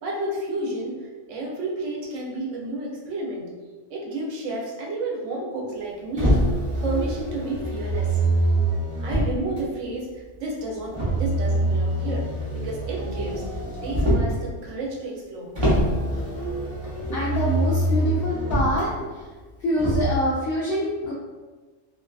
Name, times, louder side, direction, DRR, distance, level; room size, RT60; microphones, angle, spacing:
voice 1, 0.0-3.5 3.9-8.2 9.0-12.3 12.5-13.4 13.8-15.5, right 2 dB, 85° right, -2 dB, 1.0 m, -31 dB
Motor vehicle (road), 6.2-9.6 10.9-14.4 15.6-18.8 19.8-20.2, right 1 dB, 25° right, 0.8 m, -24 dB
voice 2, 17.1-19.1 19.6-21.1, equal, 60° left, -6 dB, 0.7 m, -25 dB
2.5 x 2.5 x 2.3 m, 1.3 s
omnidirectional pair, 1.2 m